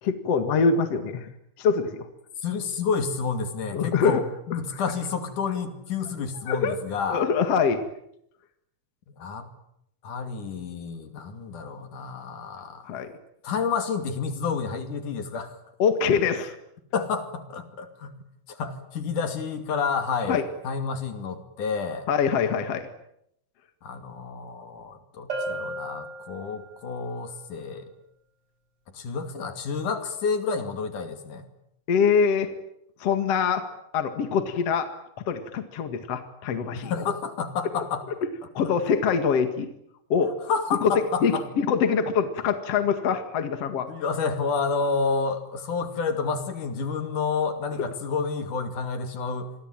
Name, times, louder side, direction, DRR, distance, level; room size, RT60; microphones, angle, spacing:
voice 1, 0.0-1.3 1.6-2.1 3.7-4.2 6.5-6.8 7.1-7.8 12.9-13.1 15.8-16.6 20.3-20.4 22.1-22.9 31.9-32.5 33.0-33.6 33.9-34.9 35.3-37.0 38.5-39.7 40.1-40.3 40.8-40.9 41.2-43.9, left 6 dB, 50° left, 9 dB, 2.7 m, -24 dB
voice 2, 2.4-7.3 9.2-9.5 10.0-12.9 13.4-15.6 16.9-18.2 18.5-22.1 23.8-27.9 28.9-31.4 36.7-38.0 40.5-41.5 43.9-49.7, left 5 dB, 70° left, 8 dB, 4.0 m, -29 dB
Bell, 25.3-26.9, right 1 dB, 40° right, 6.4 m, -34 dB
28.0 x 23.0 x 9.0 m, 0.76 s
omnidirectional pair, 3.8 m